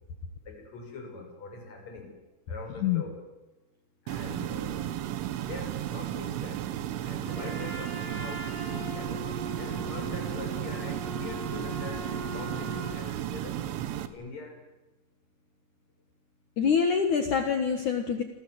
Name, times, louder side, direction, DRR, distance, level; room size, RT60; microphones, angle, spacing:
voice 1, 0.4-2.1 2.5-3.3 4.0-4.8 5.4-6.7 7.0-9.3 9.6-13.6 14.0-14.6, left 3 dB, 35° left, 3 dB, 7.1 m, -43 dB
sound 1, 4.1-14.1, right 12 dB, 80° right, 3.9 m, -34 dB
Trumpet, 7.2-13.0, left 1 dB, 55° right, 10.0 m, -41 dB
voice 2, 16.6-18.2, left 6 dB, 65° left, 6 dB, 2.0 m, -25 dB
28.5 x 24.5 x 7.9 m, 1.0 s
omnidirectional pair, 5.7 m